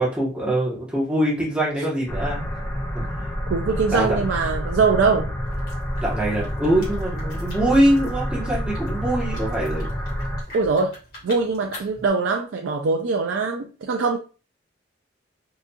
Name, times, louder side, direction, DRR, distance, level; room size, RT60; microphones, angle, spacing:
voice 1, 0.0-2.5 2.9-3.3 3.9-4.2 6.0-9.9, right 1 dB, 5° right, -6 dB, 1.0 m, -23 dB
sound 1, 2.1-10.4, equal, 15° left, 0.4 m, -28 dB
voice 2, 3.5-5.3 10.5-11.0 11.2-14.2, right 4 dB, 90° right, 3 dB, 0.4 m, -22 dB
sound 2, 5.4-12.1, left 1 dB, 50° left, 1.6 m, -44 dB
4.0 x 2.5 x 2.3 m, 0.35 s
head